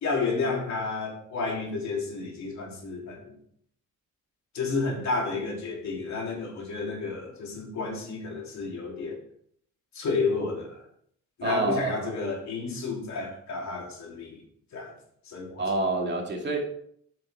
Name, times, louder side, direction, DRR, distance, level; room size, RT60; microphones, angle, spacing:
voice 1, 0.0-3.3 4.5-9.2 9.9-10.8 11.4-14.4 14.7-14.9 15.2-15.6, left 4 dB, 65° left, -1 dB, 3.1 m, -31 dB
voice 2, 11.4-12.2 15.6-16.7, right 2 dB, 35° right, 1 dB, 2.4 m, -27 dB
8.6 x 6.5 x 4.3 m, 0.66 s
cardioid pair, 90°, 30 cm